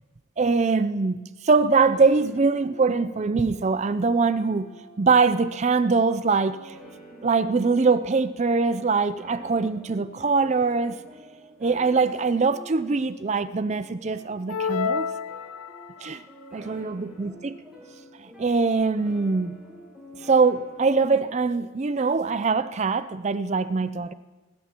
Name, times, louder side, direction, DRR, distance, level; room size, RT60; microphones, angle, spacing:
voice 1, 0.4-4.7 5.0-6.8 7.2-11.0 11.6-15.1 16.0-16.2 16.5-17.6 18.2-19.5 20.2-24.1, right 4 dB, 30° right, 0.4 m, -23 dB
sound 1, 1.8-21.4, equal, 5° right, 6.1 m, -48 dB
sound 2, 14.5-16.2, left 6 dB, 80° left, 0.4 m, -29 dB
21.5 x 21.0 x 2.9 m
head